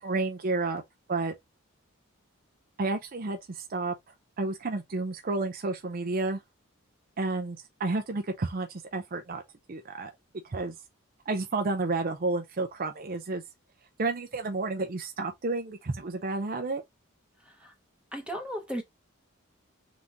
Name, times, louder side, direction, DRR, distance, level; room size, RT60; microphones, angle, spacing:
voice 1, 0.0-0.8 1.1-1.3 2.8-3.9 4.4-6.4 7.2-9.4 9.7-10.1 10.5-10.8 11.3-13.4 14.0-16.8, right 3 dB, 45° right, 0.5 m, -31 dB
voice 2, 18.1-18.8, equal, 5° right, 0.9 m, -35 dB
3.6 x 3.0 x 3.9 m
head